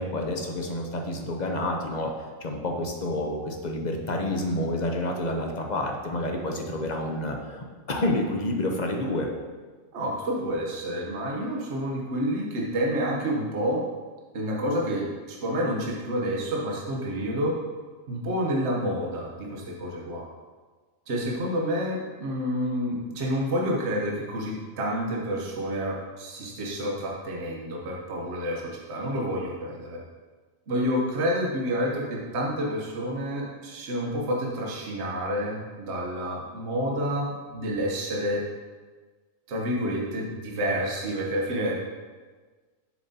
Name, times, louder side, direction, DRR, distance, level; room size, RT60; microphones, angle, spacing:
voice 1, 0.0-9.3, left 1 dB, 40° left, 2 dB, 0.8 m, -29 dB
voice 2, 9.9-13.8 14.3-17.5 18.1-20.3 21.1-30.0 30.7-38.4 39.5-41.7, equal, 60° right, -2 dB, 1.2 m, -29 dB
7.5 x 7.0 x 2.8 m, 1.4 s
omnidirectional pair, 1.4 m